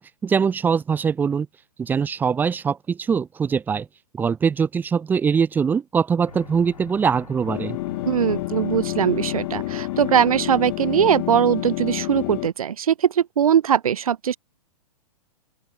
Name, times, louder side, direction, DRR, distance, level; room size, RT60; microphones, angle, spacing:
voice 1, 0.0-1.5 1.8-3.9 4.2-7.8, right 6 dB, 10° right, 0.6 m, -22 dB
Aircraft, 6.3-12.4, left 5 dB, 75° left, 2.5 m, -42 dB
sound 1, 7.5-12.5, left 22 dB, 35° left, 1.0 m, -29 dB
voice 2, 8.0-14.4, right 8 dB, 65° right, 0.9 m, -20 dB
open air
figure-of-eight pair, 115°, 20 cm